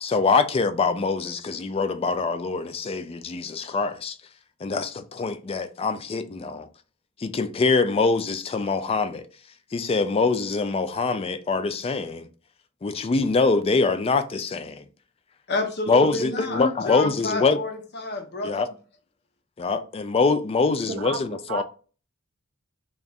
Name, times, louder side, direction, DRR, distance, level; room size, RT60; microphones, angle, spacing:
voice 1, 0.0-4.2 4.6-6.7 7.2-9.3 9.7-12.3 12.8-14.8 15.9-17.6 18.4-18.7 19.6-21.6, left 4 dB, 25° left, 0.3 m, -24 dB
voice 2, 15.5-18.7, left 2 dB, 50° left, 0.7 m, -30 dB
voice 3, 20.9-21.6, right 5 dB, 55° right, 0.4 m, -33 dB
3.4 x 2.4 x 4.0 m
head